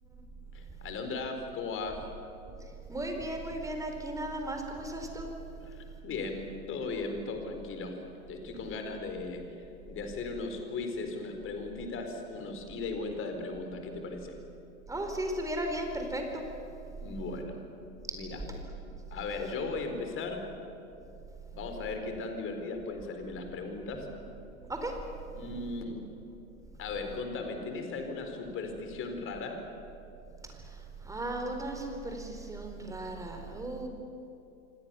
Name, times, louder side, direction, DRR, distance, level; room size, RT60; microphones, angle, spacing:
voice 1, 0.5-2.1 5.6-7.9 8.3-9.4 9.9-14.3 17.0-17.6 18.1-18.4 19.1-20.4 21.5-24.1 25.3-26.0 26.8-29.6, left 3 dB, 30° left, 5 dB, 4.4 m, -37 dB
voice 2, 2.9-5.3 14.9-16.4 24.7-24.9 31.0-33.9, right 1 dB, 5° right, 4 dB, 4.2 m, -35 dB
28.0 x 25.0 x 7.0 m, 2.8 s
figure-of-eight pair, 100°, 42 cm